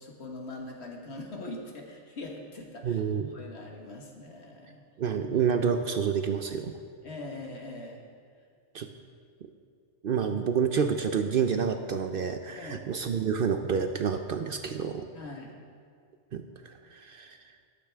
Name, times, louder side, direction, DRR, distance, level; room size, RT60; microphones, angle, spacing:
voice 1, 0.0-3.0 3.3-4.8 5.2-5.5 7.0-8.0 12.5-12.9 15.1-15.6, left 2 dB, 65° left, 0 dB, 1.7 m, -42 dB
voice 2, 2.8-3.3 5.0-6.8 8.7-8.9 10.0-15.0 16.3-17.4, right 6 dB, 60° right, 7 dB, 0.7 m, -28 dB
13.0 x 12.0 x 3.5 m, 2.2 s
omnidirectional pair, 1.2 m